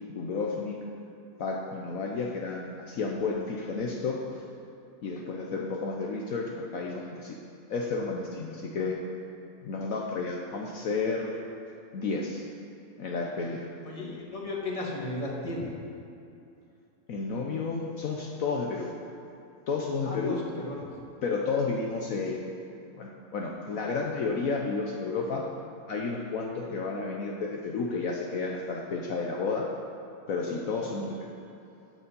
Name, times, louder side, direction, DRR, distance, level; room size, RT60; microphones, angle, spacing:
voice 1, 0.1-0.8 1.4-4.2 5.0-7.4 7.7-9.0 9.6-11.4 11.9-12.4 13.0-13.7 17.1-18.9 19.7-20.4 21.2-22.6 23.0-25.4 25.9-29.6 30.3-31.3, left 4 dB, 65° left, -1 dB, 1.2 m, -31 dB
voice 2, 13.8-15.7 20.0-20.9, left 2 dB, 20° left, -2 dB, 1.6 m, -35 dB
12.0 x 7.0 x 5.3 m, 2.7 s
omnidirectional pair, 1.7 m